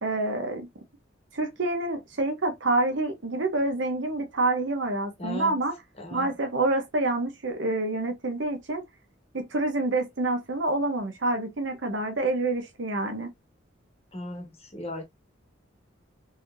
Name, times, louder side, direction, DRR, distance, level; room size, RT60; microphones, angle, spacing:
voice 1, 0.0-0.7 1.3-5.7 6.1-8.8 9.3-13.3, right 2 dB, 65° right, 0.8 m, -27 dB
voice 2, 5.2-5.5 6.0-6.3 14.1-15.0, left 1 dB, 30° left, 1.2 m, -36 dB
4.0 x 3.2 x 2.5 m
head